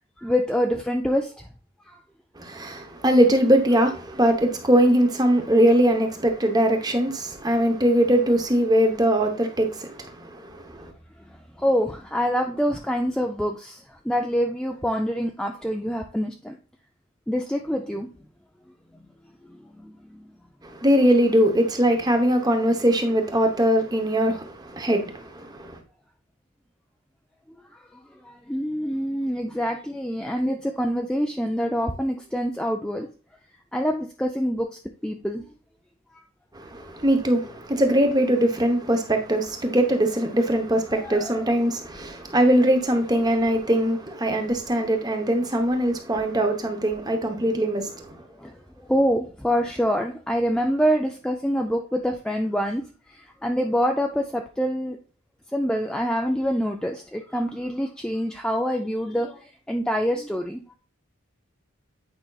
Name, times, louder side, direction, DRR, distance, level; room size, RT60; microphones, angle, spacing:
voice 1, 0.2-1.5 1.9-2.0 11.6-16.6 17.3-18.1 19.8-20.2 28.2-33.1 33.7-34.7 35.0-35.4 40.9-41.4 48.4-55.0 55.5-60.6, equal, 5° left, 0.3 m, -26 dB
voice 2, 2.4-10.9 20.6-25.8 36.5-48.1, right 1 dB, 20° right, 0.8 m, -21 dB
8.8 x 5.1 x 2.3 m
head